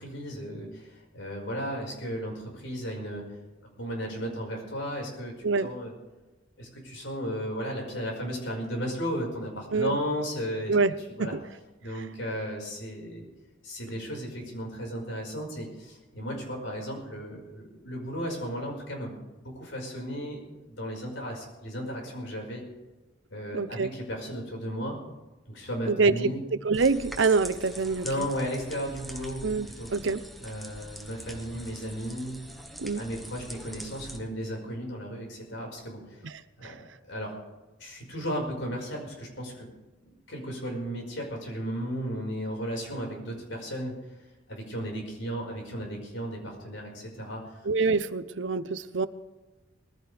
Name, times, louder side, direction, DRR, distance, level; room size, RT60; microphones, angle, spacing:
voice 1, 0.0-3.2 3.6-5.3 5.6-5.9 6.6-10.7 11.2-11.3 11.8-13.3 13.6-19.2 19.6-22.6 23.3-25.0 25.5-26.4 28.0-29.4 29.8-29.9 30.4-32.4 32.9-36.2 36.6-37.3 37.8-39.7 40.3-43.9 44.5-47.6, equal, 90° left, 0 dB, 5.3 m, -35 dB
voice 2, 23.5-23.9 25.9-26.3 26.6-28.3 29.4-30.2 32.8-33.1 36.6-36.7 47.6-49.1, right 4 dB, 85° right, 14 dB, 0.8 m, -25 dB
sound 1, 26.7-34.2, right 1 dB, ahead, 1.3 m, -44 dB
20.5 x 15.0 x 3.4 m, 1.1 s
head